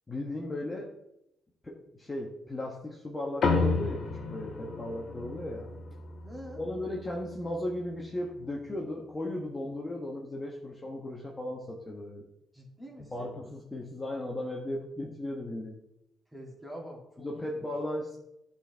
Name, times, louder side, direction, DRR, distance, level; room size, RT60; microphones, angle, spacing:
voice 1, 0.1-0.9 1.6-5.7 6.6-12.2 13.0-15.8 17.2-18.2, left 1 dB, 20° left, -2 dB, 1.1 m, -36 dB
sound 1, 3.4-8.2, left 4 dB, 55° left, 1.2 m, -32 dB
voice 2, 6.2-6.6 12.5-13.3 16.3-17.7, equal, 10° right, -2 dB, 2.5 m, -46 dB
11.0 x 4.3 x 3.4 m, 0.84 s
cardioid pair, 90°, 0 cm